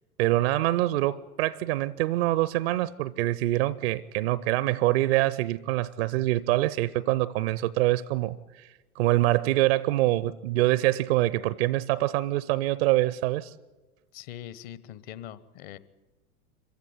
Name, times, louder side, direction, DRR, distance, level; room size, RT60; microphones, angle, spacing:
voice 1, 0.2-8.7 9.0-13.5, right 16 dB, 40° right, 0.7 m, -25 dB
voice 2, 14.1-15.8, left 11 dB, 40° left, 1.1 m, -42 dB
26.0 x 15.5 x 9.6 m
figure-of-eight pair, 95°, 46 cm